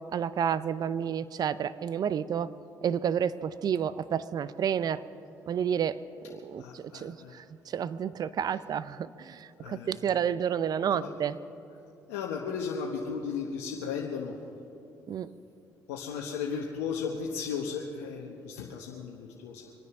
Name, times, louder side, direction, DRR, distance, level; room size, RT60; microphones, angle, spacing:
voice 1, 0.1-2.5 2.8-5.0 5.5-6.0 6.4-11.4 15.1-15.3, right 8 dB, 55° right, 16 dB, 0.6 m, -30 dB
voice 2, 6.6-7.4 9.6-9.9 10.9-11.1 12.1-14.4 15.9-19.7, left 6 dB, 90° left, -2 dB, 1.2 m, -35 dB
25.0 x 9.6 x 6.0 m, 2.8 s
supercardioid pair, 60°, 8 cm